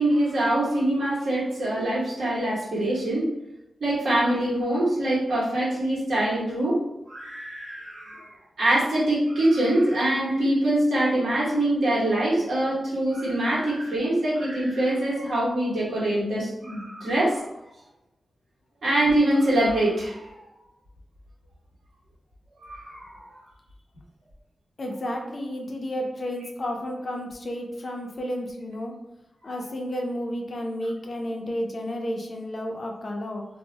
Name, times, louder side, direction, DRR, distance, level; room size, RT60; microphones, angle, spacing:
voice 1, 0.0-3.3 3.8-6.8 7.1-8.3 8.6-17.4 18.8-20.3 22.6-23.4 29.4-29.5, right 1 dB, 70° right, -7 dB, 1.3 m, -24 dB
voice 2, 24.8-28.9 29.4-33.4, equal, 40° left, 1 dB, 0.5 m, -31 dB
2.6 x 2.0 x 3.9 m, 0.89 s
wide cardioid pair, 170°, 0 cm